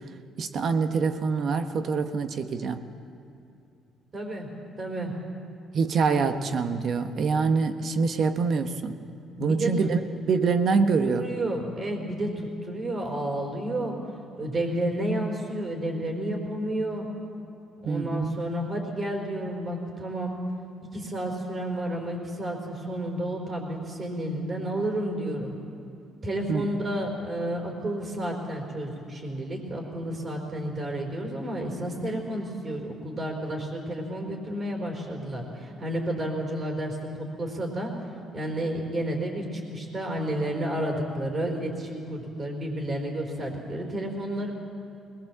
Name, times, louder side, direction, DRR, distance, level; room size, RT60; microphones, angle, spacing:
voice 1, 0.4-2.8 5.7-9.0 9.4-11.3 17.8-18.3 26.5-26.7, right 5 dB, 55° right, 8 dB, 1.3 m, -25 dB
voice 2, 4.1-4.5 4.8-5.1 9.4-9.7 11.0-14.0 14.4-17.1 17.8-20.4 20.9-25.6 26.2-37.9 38.3-44.5, right 1 dB, 40° right, 0 dB, 4.4 m, -31 dB
21.0 x 21.0 x 7.5 m, 2.6 s
supercardioid pair, 70°, 0 cm